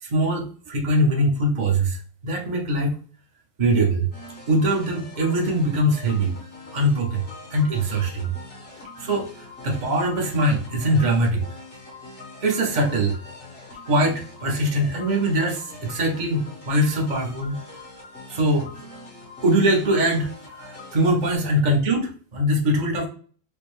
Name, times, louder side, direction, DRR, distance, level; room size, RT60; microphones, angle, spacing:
voice 1, 0.0-3.0 3.6-4.1 4.5-6.3 6.7-7.2 7.5-8.3 9.0-11.4 12.4-13.2 13.9-17.6 18.3-18.7 19.4-23.1, right 1 dB, 80° right, -1 dB, 0.4 m, -22 dB
sound 1, 4.1-21.4, left 2 dB, 35° left, 1.2 m, -43 dB
4.9 x 2.0 x 3.1 m, 0.44 s
omnidirectional pair, 2.1 m